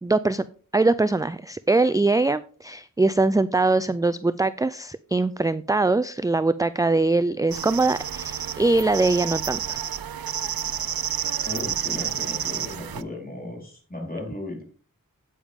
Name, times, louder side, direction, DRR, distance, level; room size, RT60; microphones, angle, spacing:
voice 1, 0.0-0.4 0.7-9.8, right 3 dB, 10° right, 15 dB, 0.3 m, -22 dB
sound 1, 7.5-13.0, right 9 dB, 90° right, 0.5 m, -30 dB
voice 2, 11.4-14.6, left 2 dB, 25° left, -1 dB, 4.0 m, -35 dB
8.9 x 8.6 x 3.5 m, 0.41 s
wide cardioid pair, 60°, 35 cm